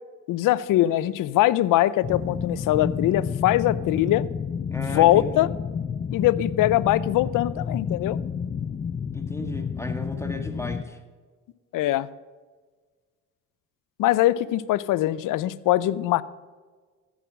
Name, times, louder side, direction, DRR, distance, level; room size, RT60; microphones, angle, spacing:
voice 1, 0.3-4.3 4.8-5.5 6.1-8.2 11.7-12.1 14.0-16.2, left 14 dB, 75° left, 19 dB, 0.6 m, -22 dB
sound 1, 2.0-10.8, left 6 dB, 30° left, 0.5 m, -30 dB
voice 2, 4.7-5.5 9.1-11.0, left 1 dB, 10° left, 5 dB, 1.7 m, -35 dB
14.5 x 6.2 x 6.2 m, 1.4 s
supercardioid pair, 75°, 33 cm